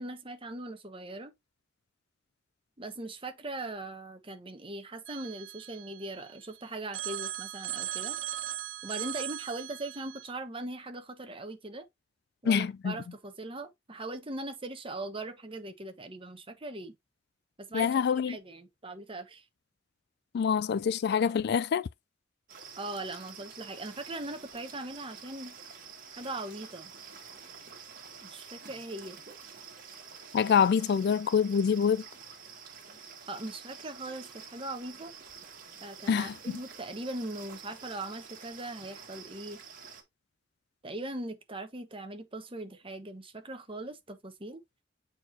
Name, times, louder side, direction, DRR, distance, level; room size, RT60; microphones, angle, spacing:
voice 1, 0.0-1.3 2.8-8.2 8.8-11.9 12.4-16.9 17.6-19.4 22.8-25.6 26.1-26.9 28.2-29.2 33.3-35.1 35.8-39.6 40.8-44.6, right 2 dB, 30° right, 1.2 m, -40 dB
Telephone, 5.1-6.5 6.9-10.3, right 12 dB, 80° right, 0.6 m, -38 dB
voice 2, 12.4-12.9 17.7-18.4 20.3-21.9 30.3-32.0 36.1-36.6, left 7 dB, 55° left, 0.3 m, -26 dB
sound 1, 22.5-40.0, right 6 dB, 50° right, 2.0 m, -48 dB
7.9 x 4.5 x 2.7 m
head